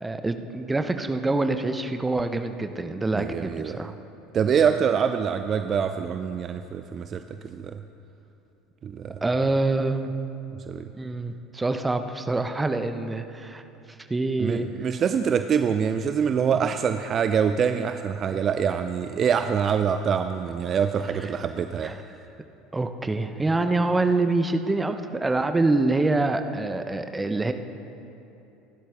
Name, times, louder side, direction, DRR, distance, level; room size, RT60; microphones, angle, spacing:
voice 1, 0.0-3.9 9.2-10.1 10.9-13.6 14.1-14.7 16.5-16.7 18.3-18.4 21.2-21.3 21.8-22.0 22.7-27.5, right 2 dB, 15° right, 8 dB, 0.9 m, -25 dB
voice 2, 3.1-3.8 4.3-7.8 8.8-9.2 10.7-10.9 14.4-21.9, right 7 dB, 35° right, 9 dB, 0.5 m, -25 dB
28.0 x 12.0 x 3.5 m, 2.9 s
figure-of-eight pair, 70°, 0 cm